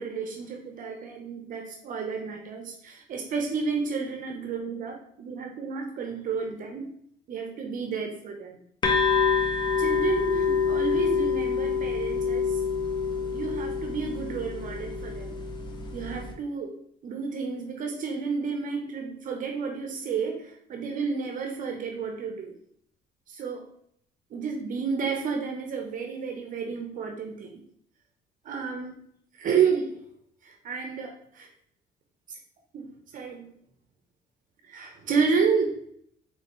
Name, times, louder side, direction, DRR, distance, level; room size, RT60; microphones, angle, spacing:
voice 1, 0.0-6.9 7.3-8.6 9.8-12.6 13.1-15.4 15.9-16.8 17.0-22.5 23.3-23.7 24.3-27.6 28.4-29.1 29.3-30.0 30.4-31.5 32.3-32.4 32.7-33.5 34.7-35.8, right 5 dB, 50° right, 3 dB, 0.7 m, -31 dB
sound 1, 8.8-16.3, left 5 dB, 25° left, 0.7 m, -27 dB
4.3 x 3.1 x 3.0 m, 0.68 s
cardioid pair, 110°, 17 cm